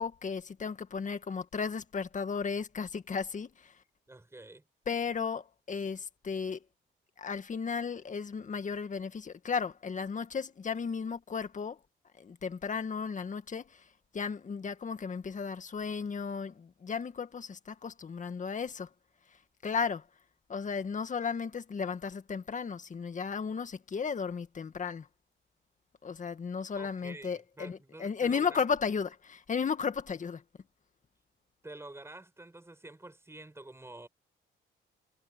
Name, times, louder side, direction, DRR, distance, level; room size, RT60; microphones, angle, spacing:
voice 1, 0.0-3.8 4.9-6.6 7.2-11.8 12.2-18.9 19.6-20.1 20.5-25.1 26.0-30.4, left 6 dB, 40° left, 2.0 m, -34 dB
voice 2, 4.1-4.6 26.8-28.6 31.6-34.1, right 2 dB, 15° right, 5.6 m, -48 dB
cardioid pair, 90°, 20 cm